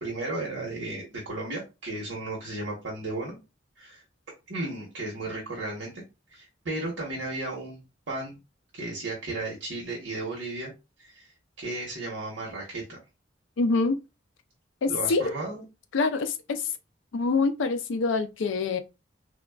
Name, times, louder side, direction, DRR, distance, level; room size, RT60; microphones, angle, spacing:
voice 1, 0.0-3.4 3.8-4.0 4.5-6.0 6.3-7.8 8.1-8.4 8.7-10.7 11.0-11.3 11.6-13.0 14.9-15.6, right 2 dB, 80° right, 0.9 m, -34 dB
voice 2, 13.6-14.0 14.8-15.3 15.9-16.7 17.1-18.8, left 4 dB, 80° left, 0.4 m, -25 dB
3.5 x 2.2 x 2.2 m
head